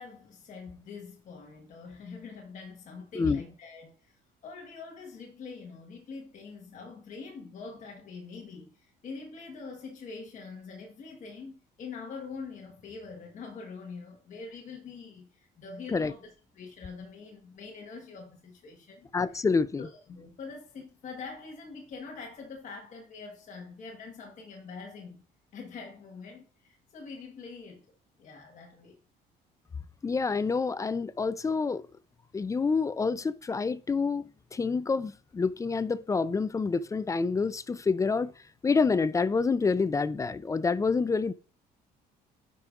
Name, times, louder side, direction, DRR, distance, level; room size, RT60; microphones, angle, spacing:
voice 1, 0.0-19.1 19.8-25.2 25.5-27.9 28.2-29.0, left 4 dB, 45° left, 1.3 m, -44 dB
voice 2, 19.1-19.9 30.0-31.9 32.3-34.2 34.5-38.3 38.6-41.3, left 4 dB, 20° left, 0.3 m, -27 dB
10.0 x 5.2 x 2.4 m
cardioid pair, 110°, 17 cm